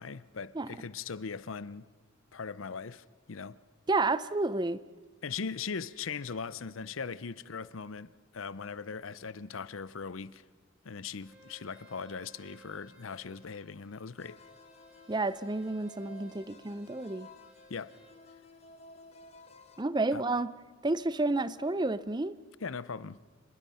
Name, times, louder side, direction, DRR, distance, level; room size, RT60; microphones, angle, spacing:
voice 1, 0.0-1.9 2.3-3.6 5.2-10.4 10.8-14.4 17.7-17.9 20.1-20.2 22.6-23.2, left 5 dB, 90° left, 0.7 m, -40 dB
voice 2, 3.9-4.8 15.1-17.3 19.8-20.5 20.8-22.4, right 2 dB, 20° right, 0.6 m, -30 dB
Bowed string instrument, 11.2-18.1, right 1 dB, 5° right, 3.5 m, -60 dB
sound 1, 14.2-19.8, left 2 dB, 30° left, 1.3 m, -55 dB
28.5 x 21.0 x 5.6 m
head